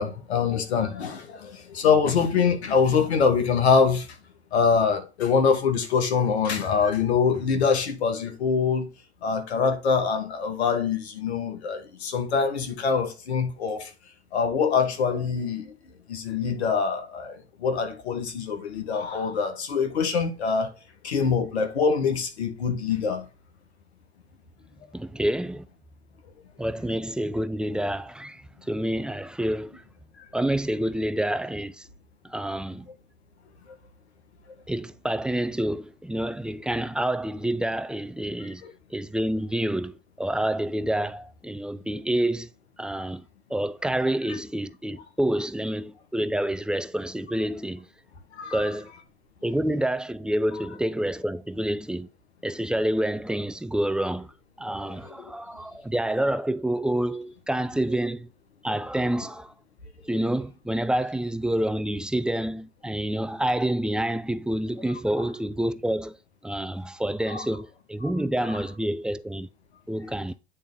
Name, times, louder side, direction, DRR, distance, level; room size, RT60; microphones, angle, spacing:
voice 1, 0.0-4.1 4.5-8.9 9.2-13.9 14.3-15.7 16.1-20.7 21.0-23.2 38.6-38.7 48.3-48.6 54.9-55.3 67.3-67.4, left 5 dB, 85° left, 1.5 m, -24 dB
voice 2, 24.9-25.7 26.6-29.8 30.3-31.9 32.2-32.9 34.7-38.6 38.9-42.5 42.8-43.2 43.5-47.9 48.5-48.9 49.4-52.1 52.4-54.3 54.6-58.3 58.6-59.5 60.0-66.2 66.4-69.5 69.9-70.3, right 1 dB, 5° right, 0.3 m, -28 dB
8.6 x 3.5 x 3.9 m
hypercardioid pair, 80°, 32 cm